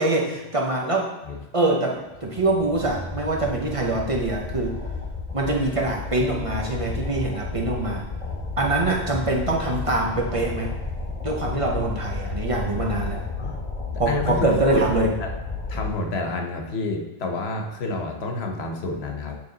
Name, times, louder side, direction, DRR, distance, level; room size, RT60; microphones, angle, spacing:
voice 1, 0.0-1.1 1.5-4.8 5.3-8.1 8.6-10.7 11.2-13.2 14.0-15.1, right 2 dB, 35° right, -1 dB, 0.8 m, -24 dB
sound 1, 2.2-15.9, left 4 dB, 35° left, 1.2 m, -32 dB
voice 2, 14.1-15.3 15.7-19.4, left 2 dB, 80° left, 3 dB, 1.1 m, -29 dB
9.1 x 3.5 x 3.9 m, 1.1 s
omnidirectional pair, 1.1 m